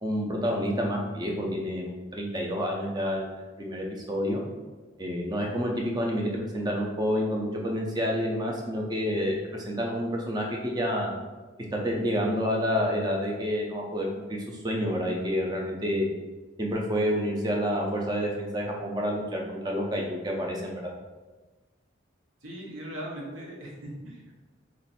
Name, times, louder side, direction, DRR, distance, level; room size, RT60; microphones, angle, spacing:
voice 1, 0.0-4.4 5.0-9.4 9.7-11.1 11.8-14.1 14.6-16.1 16.6-20.8, equal, 20° right, -1 dB, 0.5 m, -28 dB
voice 2, 22.4-24.4, right 1 dB, 90° right, -2 dB, 0.9 m, -39 dB
3.1 x 2.6 x 4.1 m, 1.2 s
head